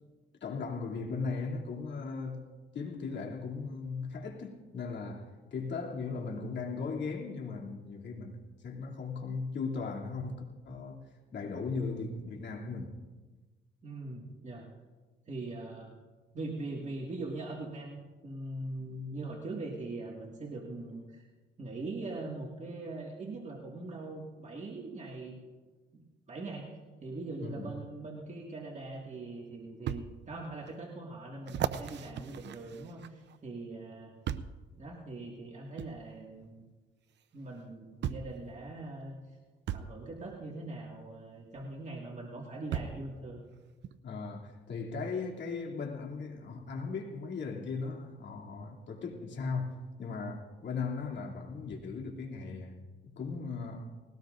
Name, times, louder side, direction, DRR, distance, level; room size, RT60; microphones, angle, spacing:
voice 1, 0.4-13.0 27.4-27.7 44.0-53.8, left 4 dB, 65° left, 2.8 m, -38 dB
voice 2, 13.8-14.7 15.3-15.9 16.3-21.3 21.6-25.4 26.3-34.1 34.7-36.7 37.3-39.4 39.7-43.4, right 2 dB, 35° right, 2.0 m, -41 dB
sound 1, 28.7-28.8 29.9-30.1 30.7-30.8 31.5-33.4 34.3-34.6 35.8-35.9 37.2-37.3 38.0-38.4 39.7-39.9 41.5-41.6 42.7-43.1 43.8-43.9, right 9 dB, 60° right, 0.7 m, -36 dB
20.0 x 18.0 x 2.6 m
cardioid pair, 90°, 20 cm